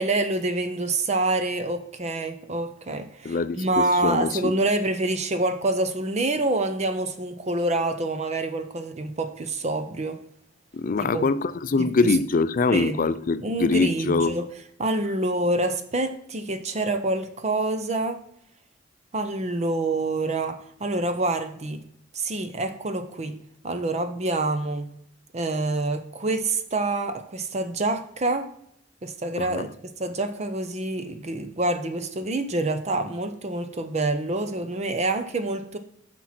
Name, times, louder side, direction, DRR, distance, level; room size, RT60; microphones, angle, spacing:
voice 1, 0.0-10.2 11.0-11.3 11.8-11.9 12.7-13.0 13.4-14.5 14.8-18.2 19.1-21.8 22.1-23.4 23.6-24.9 25.3-28.5 29.0-29.7 30.0-35.8, right 2 dB, 35° right, 0.7 m, -26 dB
voice 2, 3.2-4.5 10.7-14.4 29.4-29.7, left 4 dB, 45° left, 0.4 m, -24 dB
9.8 x 6.1 x 4.3 m
head